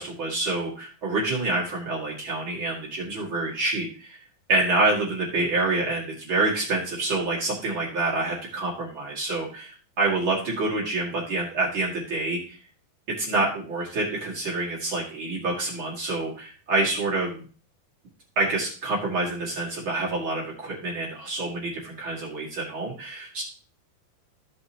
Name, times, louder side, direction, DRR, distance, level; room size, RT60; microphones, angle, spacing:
voice 1, 0.0-4.2 4.5-12.6 13.1-17.4 18.4-23.4, right 2 dB, 35° right, -4 dB, 2.5 m, -27 dB
15.5 x 5.5 x 2.9 m, 0.39 s
omnidirectional pair, 4.7 m